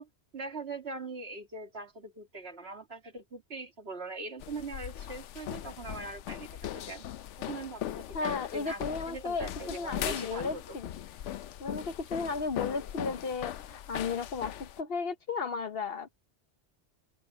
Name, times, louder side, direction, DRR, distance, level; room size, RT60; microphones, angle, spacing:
voice 1, 0.0-7.1 7.4-10.8, right 3 dB, 60° right, 2.7 m, -42 dB
sound 1, 4.4-14.8, left 11 dB, 85° left, 1.0 m, -39 dB
voice 2, 8.1-10.9 11.6-16.2, left 4 dB, 55° left, 1.1 m, -34 dB
open air
omnidirectional pair, 1.2 m